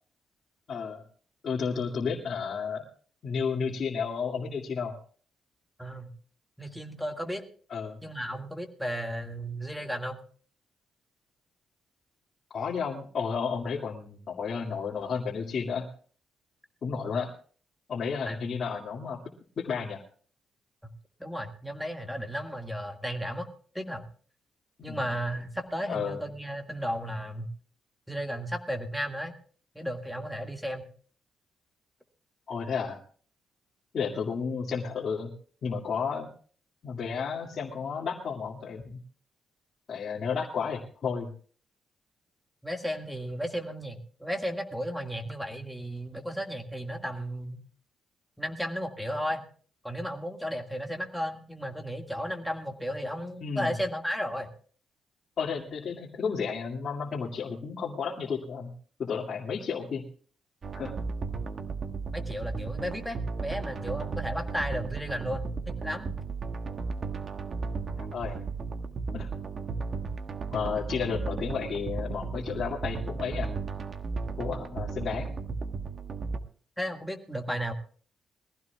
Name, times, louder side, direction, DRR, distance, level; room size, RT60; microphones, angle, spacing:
voice 1, 0.7-1.0 1.4-2.8 3.2-5.0 7.7-8.0 12.5-15.9 16.8-17.3 17.9-19.2 19.6-20.0 24.8-25.1 25.9-26.2 32.5-33.0 33.9-35.3 35.6-36.3 36.8-39.0 39.9-41.3 53.4-53.7 55.4-58.7 59.0-60.0 60.7-60.9 68.0-68.4 69.1-69.3 70.5-73.5 74.4-75.3, left 6 dB, 50° left, -4 dB, 2.1 m, -32 dB
voice 2, 5.8-6.1 6.6-7.4 8.0-10.2 17.0-17.1 18.3-18.4 21.2-23.5 23.7-24.0 24.8-27.5 28.1-29.3 29.8-30.9 42.6-47.6 48.4-49.4 49.8-54.5 62.1-66.2 76.8-77.7, equal, ahead, 5 dB, 1.8 m, -34 dB
sound 1, 60.6-76.4, right 4 dB, 45° right, 1.3 m, -35 dB
22.0 x 15.5 x 2.3 m, 0.44 s
cardioid pair, 130°, 0 cm